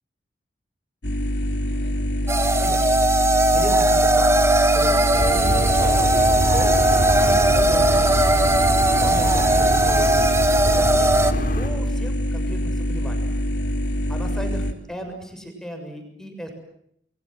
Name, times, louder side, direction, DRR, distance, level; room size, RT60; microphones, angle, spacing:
sound 1, 1.0-14.7, equal, 65° left, 3.4 m, -25 dB
sound 2, 2.3-11.3, right 2 dB, 15° right, 1.4 m, -19 dB
voice 1, 3.5-5.0 5.3-6.7 7.2-8.3 9.0-11.2 11.6-13.3 14.1-16.5, equal, 5° left, 5 dB, 6.9 m, -35 dB
sound 3, 5.1-11.7, equal, 50° left, 5.3 m, -26 dB
29.5 x 23.0 x 7.8 m, 0.72 s
head